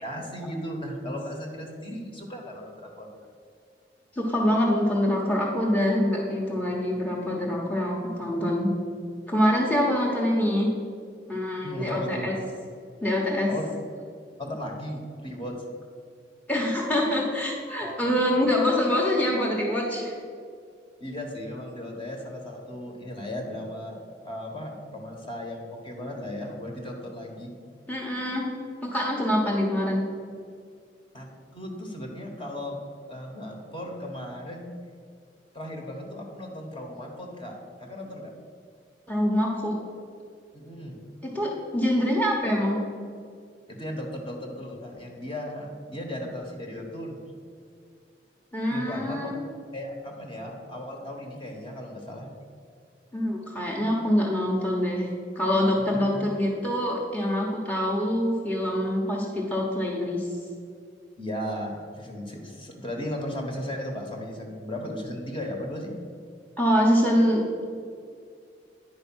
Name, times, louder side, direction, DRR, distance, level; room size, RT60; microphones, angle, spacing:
voice 1, 0.0-3.1 11.6-12.3 13.5-13.7 14.4-15.5 17.8-18.2 21.0-23.9 24.2-27.5 31.1-31.3 31.5-32.8 33.1-34.7 35.5-38.3 40.5-41.0 43.7-47.2 48.7-49.3 49.7-52.3 55.9-56.0 61.2-65.9, left 1 dB, 30° left, 1 dB, 1.4 m, -36 dB
voice 2, 4.1-8.7 9.3-10.7 11.3-12.3 13.0-13.5 16.5-20.1 27.9-28.5 28.8-30.0 39.1-39.8 41.2-42.8 48.5-49.4 53.1-55.1 55.3-60.3 66.6-67.6, left 1 dB, 10° left, -3 dB, 1.1 m, -25 dB
10.0 x 4.8 x 6.2 m, 2.3 s
head